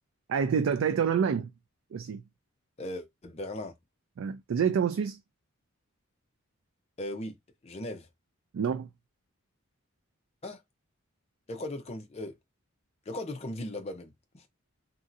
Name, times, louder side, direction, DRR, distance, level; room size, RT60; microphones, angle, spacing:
voice 1, 0.3-1.5 1.9-2.2 4.2-5.2 8.5-8.9, right 7 dB, 75° right, 0.3 m, -27 dB
voice 2, 2.8-3.8 7.0-7.4 7.6-8.1 10.4-10.6 11.5-12.4 13.1-14.5, left 1 dB, 30° left, 0.5 m, -38 dB
3.0 x 2.6 x 2.5 m
head